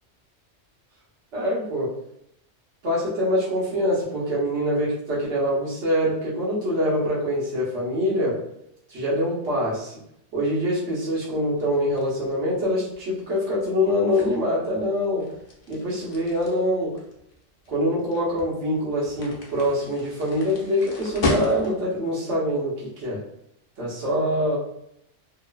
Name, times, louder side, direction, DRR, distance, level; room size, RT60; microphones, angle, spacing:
voice 1, 1.3-1.9 2.8-8.3 8.9-9.9 10.3-15.3 15.7-16.9 17.7-23.2 23.8-24.6, equal, 70° right, -7 dB, 1.3 m, -24 dB
sound 1, 11.6-22.0, left 2 dB, 50° left, 0.6 m, -35 dB
2.9 x 2.1 x 2.3 m, 0.77 s
omnidirectional pair, 1.2 m